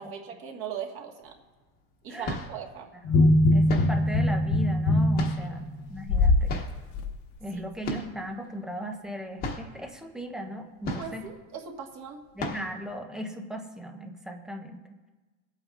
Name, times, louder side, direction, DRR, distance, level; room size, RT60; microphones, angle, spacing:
voice 1, 0.0-1.4 2.0-2.9 7.5-7.6 11.0-12.3, right 7 dB, 35° right, 2 dB, 1.5 m, -39 dB
sound 1, 1.3-1.4 2.0-2.7 3.7-4.1 5.1-5.7 6.5-6.9 7.8-8.3 8.5-8.6 9.0-9.1 9.4-9.8 10.8-11.4 11.8-11.9 12.4-12.8, left 2 dB, 25° left, 1.1 m, -35 dB
sound 2, 3.1-6.5 7.0-7.1, left 1 dB, 45° left, 1.0 m, -22 dB
voice 2, 3.1-6.5 7.4-11.3 12.4-14.8, equal, ahead, 3 dB, 0.4 m, -38 dB
26.5 x 8.9 x 2.4 m, 1.3 s
supercardioid pair, 165°, 36 cm